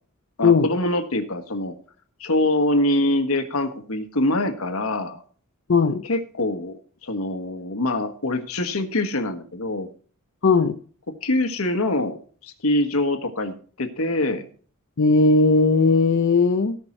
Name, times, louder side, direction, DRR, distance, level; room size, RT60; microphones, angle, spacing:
voice 1, 0.4-1.7 2.2-5.2 6.0-9.9 11.2-12.2 12.4-14.5, left 1 dB, 85° left, 7 dB, 1.5 m, -24 dB
voice 2, 5.7-6.0 10.4-10.8 15.0-16.8, left 4 dB, 60° left, 5 dB, 0.7 m, -17 dB
17.5 x 6.0 x 4.4 m, 0.44 s
head